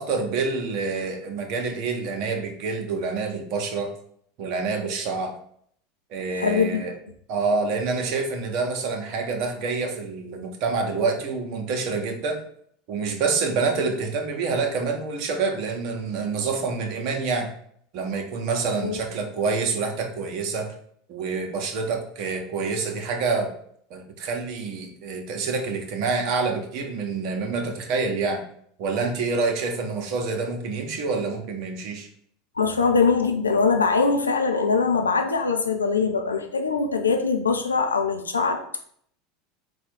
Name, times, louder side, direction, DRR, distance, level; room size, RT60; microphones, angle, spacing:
voice 1, 0.0-3.9 4.4-5.3 6.1-6.9 7.3-12.4 12.9-17.5 17.9-20.7 21.1-23.5 23.9-28.4 28.8-32.1, right 4 dB, 55° right, 4 dB, 0.8 m, -27 dB
voice 2, 6.4-6.8 18.8-19.0 32.6-38.9, left 4 dB, 85° left, 5 dB, 0.5 m, -22 dB
4.2 x 2.3 x 4.5 m, 0.65 s
figure-of-eight pair, 80°, 0 cm